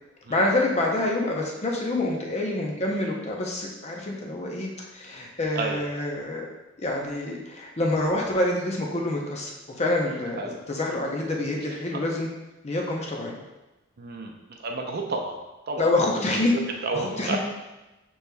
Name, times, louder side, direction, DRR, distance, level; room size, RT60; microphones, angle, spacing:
voice 1, 0.3-6.5 6.8-9.5 9.8-12.3 12.6-13.3 15.8-16.6 16.9-17.4, left 2 dB, 30° left, -1 dB, 0.7 m, -27 dB
voice 2, 5.6-5.9 10.4-10.6 14.0-14.3 14.6-15.4 15.7-15.9 16.8-17.4, right 3 dB, 50° right, 2 dB, 0.6 m, -30 dB
6.9 x 3.1 x 2.2 m, 1.0 s
head